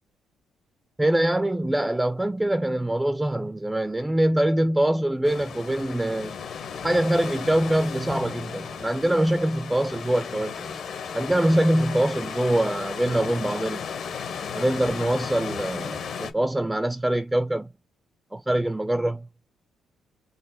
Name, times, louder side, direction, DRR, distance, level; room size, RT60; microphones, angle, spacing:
voice 1, 1.0-6.3 6.8-10.7 11.1-13.9 14.5-17.7 18.3-19.3, right 1 dB, 10° right, 0.3 m, -24 dB
sound 1, 5.2-16.3, left 6 dB, 65° left, 0.9 m, -35 dB
3.9 x 2.1 x 3.9 m
cardioid pair, 90°, 0 cm